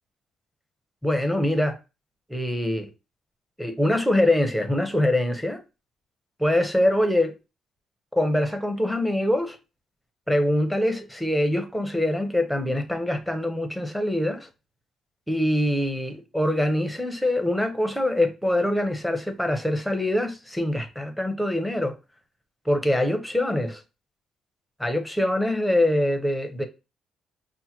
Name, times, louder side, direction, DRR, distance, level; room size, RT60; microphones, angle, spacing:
voice 1, 1.0-1.8 2.3-2.9 3.6-5.6 6.4-7.3 8.1-9.6 10.3-14.5 15.3-21.9 22.7-23.8 24.8-26.7, left 1 dB, ahead, 0.8 m, -24 dB
5.5 x 2.2 x 2.9 m
cardioid pair, 90°, 0 cm